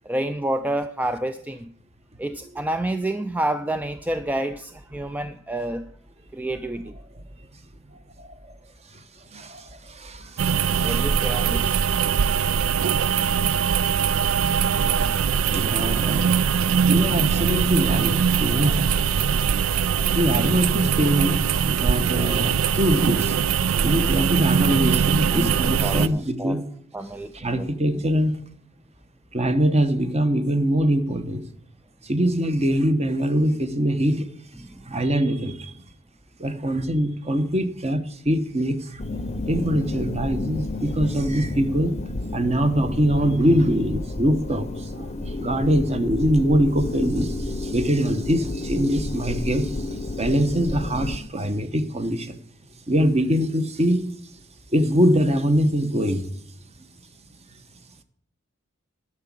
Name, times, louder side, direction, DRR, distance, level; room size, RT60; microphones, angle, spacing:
voice 1, 0.1-1.7 2.2-5.9 6.3-7.0 10.2-10.3 10.8-11.7 23.7-24.0 25.3-26.6 26.9-27.7 34.6-35.1, right 1 dB, 10° right, 0.4 m, -29 dB
voice 2, 8.2-8.5 8.9-9.0 9.3-11.0 15.5-16.4 16.9-18.9 19.7-23.4 23.8-26.7 27.3-28.4 29.3-31.4 32.0-34.3 34.9-35.7 36.4-39.0 39.5-42.0 42.3-49.9 50.2-52.4 52.9-54.0 54.7-56.3, equal, 30° right, 1.0 m, -23 dB
sound 1, 10.4-26.1, right 7 dB, 75° right, 0.4 m, -21 dB
sound 2, 39.0-51.2, left 2 dB, 30° left, 0.7 m, -31 dB
11.0 x 6.1 x 8.3 m
head